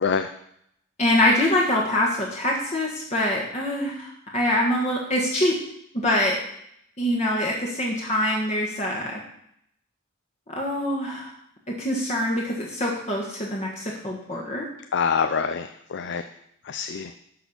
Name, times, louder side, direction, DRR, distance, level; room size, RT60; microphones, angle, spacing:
voice 1, 1.0-5.6 5.9-6.4 7.0-9.2 10.6-11.3 11.7-14.7, left 1 dB, 35° left, -2 dB, 1.3 m, -24 dB
voice 2, 14.9-16.2 16.7-17.1, left 6 dB, 55° left, 9 dB, 0.4 m, -25 dB
10.5 x 4.3 x 7.0 m, 0.73 s
head